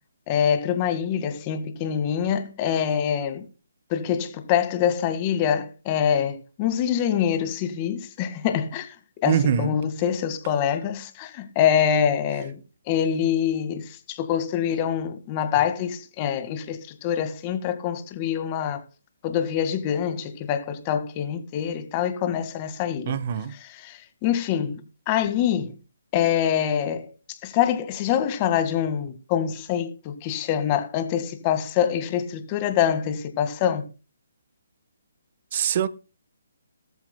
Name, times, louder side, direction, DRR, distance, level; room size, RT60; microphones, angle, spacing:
voice 1, 0.3-3.5 3.9-8.9 9.2-12.6 12.9-18.8 19.2-23.1 23.6-24.8 25.1-25.7 26.1-33.9, left 9 dB, 25° left, 1.9 m, -25 dB
voice 2, 9.2-9.8 23.1-23.5 35.5-35.9, right 9 dB, 40° right, 1.2 m, -23 dB
18.0 x 14.0 x 2.3 m
hypercardioid pair, 150°, 0 cm